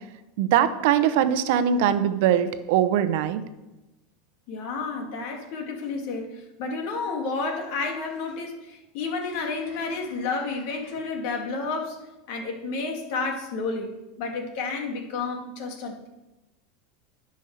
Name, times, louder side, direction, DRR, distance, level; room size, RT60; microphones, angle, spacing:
voice 1, 0.4-3.4, right 9 dB, 65° right, 11 dB, 0.8 m, -21 dB
voice 2, 4.5-12.0 12.3-16.1, left 4 dB, 60° left, 3 dB, 2.2 m, -31 dB
10.5 x 5.3 x 6.7 m, 1.0 s
supercardioid pair, 125°, 0 cm